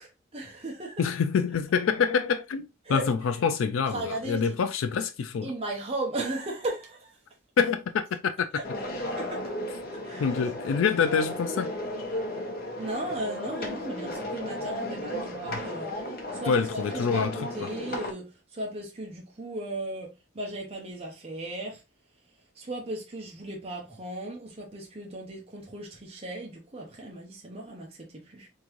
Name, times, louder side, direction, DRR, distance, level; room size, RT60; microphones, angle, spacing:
voice 1, 0.0-1.0 2.8-3.1 3.9-4.6 5.4-7.1 9.2-9.4 10.0-10.3 12.8-21.8 22.5-28.5, right 2 dB, 30° right, 0.8 m, -36 dB
voice 2, 1.0-5.5 7.6-8.5 10.2-11.7 16.5-17.4, left 6 dB, 75° left, 0.4 m, -26 dB
sound 1, 8.6-18.1, left 1 dB, 50° left, 1.1 m, -35 dB
3.8 x 3.5 x 3.0 m
head